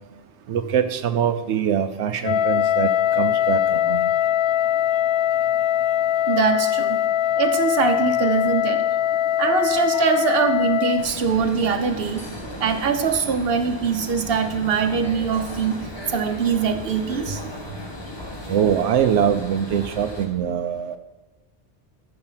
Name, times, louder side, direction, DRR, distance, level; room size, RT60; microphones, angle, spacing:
voice 1, 0.5-4.1 18.5-21.0, right 8 dB, 90° right, 8 dB, 1.0 m, -23 dB
Wind instrument woodwind instrument, 2.2-11.1, left 11 dB, 65° left, 0.8 m, -21 dB
voice 2, 6.3-7.0 7.4-8.8 9.4-12.2 12.6-17.6, right 6 dB, 60° right, 6 dB, 1.2 m, -23 dB
sound 1, 11.0-20.3, left 1 dB, 20° left, 1.7 m, -36 dB
13.0 x 6.7 x 5.7 m, 1.2 s
omnidirectional pair, 1.1 m